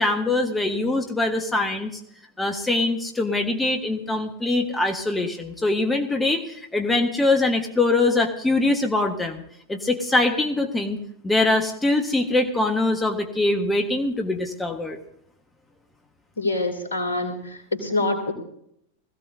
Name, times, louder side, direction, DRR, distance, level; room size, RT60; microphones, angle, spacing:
voice 1, 0.0-1.9 2.4-9.4 9.7-11.0 11.2-15.0, left 2 dB, 10° left, 4 dB, 1.5 m, -23 dB
voice 2, 16.4-18.3, left 2 dB, 70° left, 5 dB, 2.7 m, -25 dB
20.5 x 15.5 x 2.8 m, 0.73 s
figure-of-eight pair, 90°, 0 cm